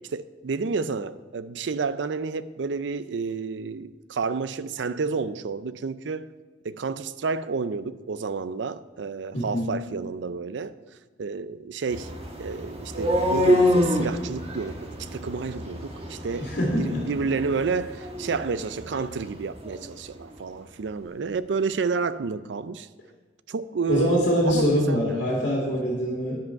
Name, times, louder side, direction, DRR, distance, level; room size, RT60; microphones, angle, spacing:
voice 1, 0.1-6.3 6.6-10.8 11.2-12.1 12.4-22.9 23.5-25.2, right 5 dB, 80° right, 0.5 m, -30 dB
voice 2, 9.3-9.7 16.4-17.0 23.9-26.4, equal, 75° left, 2.4 m, -24 dB
sound 1, 11.9-19.9, left 1 dB, 35° right, 1.4 m, -27 dB
10.5 x 7.7 x 5.7 m
head